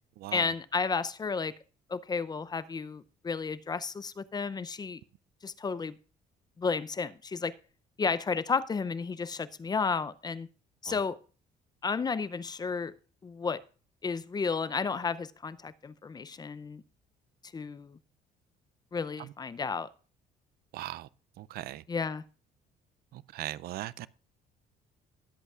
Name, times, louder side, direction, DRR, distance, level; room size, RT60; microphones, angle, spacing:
voice 1, 0.3-1.5 1.9-5.0 5.4-5.9 6.6-7.5 8.0-10.5 10.8-11.2 11.8-12.9 13.2-13.6 14.0-16.8 17.5-18.0 18.9-19.9 21.9-22.2, left 5 dB, 25° left, 0.5 m, -32 dB
voice 2, 20.7-21.1 21.4-21.8 23.1-24.1, right 15 dB, 65° right, 0.4 m, -39 dB
19.0 x 8.0 x 2.4 m
cardioid pair, 110°, 17 cm